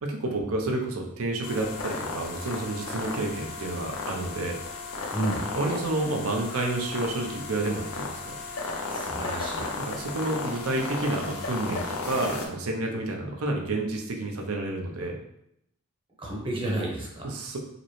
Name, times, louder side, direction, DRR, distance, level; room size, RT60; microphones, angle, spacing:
voice 1, 0.0-4.6 5.5-8.3 9.7-15.2 17.3-17.6, right 2 dB, 75° right, 1 dB, 0.7 m, -30 dB
sound 1, 1.4-12.5, left 3 dB, 80° left, 0.6 m, -35 dB
voice 2, 5.1-5.4 8.9-9.7 16.2-17.3, right 1 dB, 25° right, -2 dB, 0.8 m, -31 dB
5.0 x 2.1 x 3.1 m, 0.77 s
head